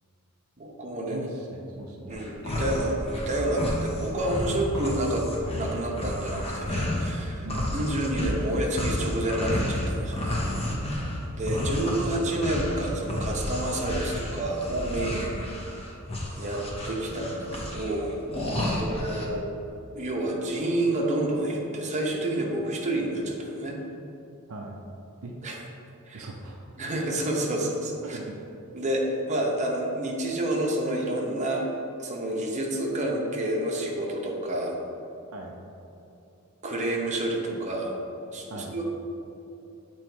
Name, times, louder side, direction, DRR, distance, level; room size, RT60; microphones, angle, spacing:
voice 1, 0.6-1.3 2.1-10.5 11.3-15.3 16.4-18.1 18.8-19.4 19.9-23.8 25.4-25.6 26.1-26.3 26.8-28.2 28.7-31.6 32.0-34.8 36.6-37.9 38.3-38.8, right 1 dB, 30° right, -2 dB, 0.8 m, -29 dB
voice 2, 1.1-2.2 7.4-7.7 10.6-11.2 15.1-15.3 18.5-18.8 24.5-24.8 25.2-25.3 26.1-26.6 28.0-28.3 35.3-35.5 38.5-38.7, right 2 dB, 65° right, 0 dB, 0.6 m, -40 dB
sound 1, 2.1-7.1 7.5-19.3, left 1 dB, 25° left, 0.8 m, -31 dB
7.5 x 3.1 x 4.5 m, 2.8 s
head